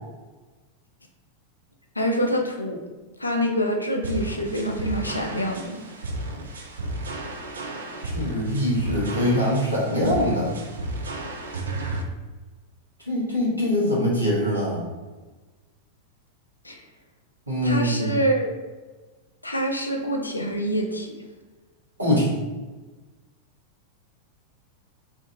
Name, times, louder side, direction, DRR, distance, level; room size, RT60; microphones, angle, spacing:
voice 1, 2.0-2.8 3.2-5.8 16.6-16.8 17.6-18.5 19.4-21.1, equal, 85° left, 1 dB, 0.4 m, -26 dB
sound 1, 4.0-12.0, right 2 dB, 70° right, 0.4 m, -33 dB
voice 2, 8.0-10.5 13.1-14.8 17.5-18.1 22.0-22.3, equal, 85° right, -6 dB, 1.0 m, -23 dB
2.6 x 2.5 x 2.6 m, 1.2 s
figure-of-eight pair, 90°, 0 cm